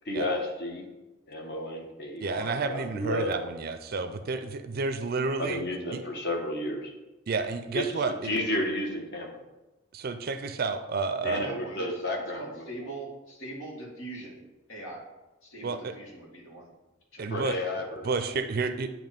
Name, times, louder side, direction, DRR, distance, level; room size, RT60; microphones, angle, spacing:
voice 1, 0.0-0.8 1.3-3.4 5.4-6.9 7.7-7.8 8.2-9.3 11.2-12.7 17.3-18.1, left 1 dB, 55° left, 1 dB, 1.3 m, -32 dB
voice 2, 2.2-5.6 5.9-6.0 7.3-8.3 9.9-11.5 15.6-15.8 17.2-17.6 18.0-18.9, right 4 dB, 50° right, 9 dB, 0.4 m, -30 dB
voice 3, 11.3-12.0 12.3-14.4 14.7-15.0 15.4-16.7 17.1-17.4, right 2 dB, 90° left, -3 dB, 2.0 m, -42 dB
9.0 x 3.0 x 5.1 m, 1.1 s
head